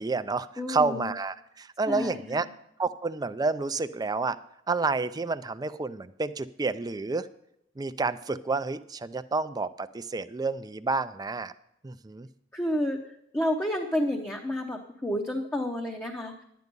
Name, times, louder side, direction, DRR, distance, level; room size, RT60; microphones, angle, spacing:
voice 1, 0.0-2.5 2.8-4.4 4.7-7.3 7.8-11.5 11.8-12.3, right 3 dB, 20° right, 11 dB, 0.4 m, -29 dB
voice 2, 0.6-1.1 1.9-2.4 12.5-13.0 13.3-16.4, left 1 dB, 10° left, 1 dB, 0.8 m, -30 dB
11.0 x 9.4 x 5.3 m, 0.79 s
head